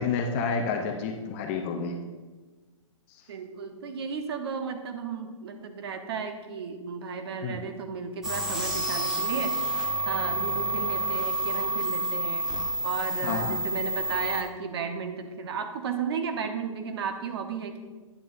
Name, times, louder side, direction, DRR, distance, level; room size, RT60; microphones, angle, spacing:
voice 1, 0.0-2.0 7.4-7.6 13.2-13.6, left 5 dB, 25° left, 4 dB, 0.5 m, -29 dB
voice 2, 3.3-12.5 12.8-17.8, right 6 dB, 50° right, 7 dB, 0.8 m, -34 dB
sound 1, 8.2-14.4, right 2 dB, 5° right, 0.9 m, -29 dB
9.4 x 7.5 x 2.5 m, 1.3 s
hypercardioid pair, 155°, 17 cm